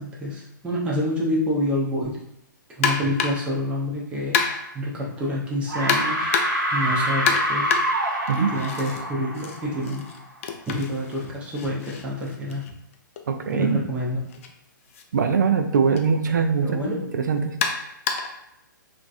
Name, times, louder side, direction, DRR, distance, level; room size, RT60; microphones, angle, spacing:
voice 1, 0.0-2.2 2.8-4.4 4.7-6.3 6.7-7.7 8.4-10.1 10.7-12.6 13.5-14.2 16.6-17.0, equal, 10° right, -5 dB, 0.6 m, -27 dB
sound 1, 2.8-3.5 4.3-4.8 5.9-6.7 7.3-9.0 9.3-13.2 14.3-14.5 14.9-15.0 16.0-16.1 17.6-18.4, left 5 dB, 40° left, 0.4 m, -28 dB
sound 2, 5.0-5.4 5.7-10.3, right 1 dB, 80° right, 0.8 m, -26 dB
voice 2, 13.3-13.8 15.1-17.6, right 6 dB, 60° right, 7 dB, 0.4 m, -22 dB
3.0 x 2.5 x 2.5 m, 0.79 s
figure-of-eight pair, 120°, 11 cm